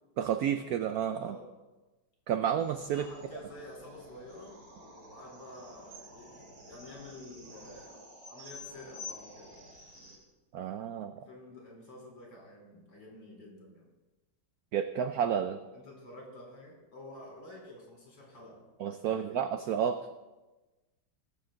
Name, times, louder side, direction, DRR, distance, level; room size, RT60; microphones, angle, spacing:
voice 1, 0.2-1.4 2.3-3.1 10.5-11.2 14.7-15.6 18.8-20.1, right 8 dB, 80° right, 9 dB, 0.8 m, -31 dB
voice 2, 1.2-1.5 2.9-8.0 8.3-9.6 11.1-13.9 15.7-18.6 19.1-19.4, left 1 dB, 70° left, -2 dB, 4.7 m, -50 dB
sound 1, 2.6-10.2, left 2 dB, 60° right, 3.5 m, -50 dB
20.0 x 7.5 x 3.9 m, 1.2 s
omnidirectional pair, 2.1 m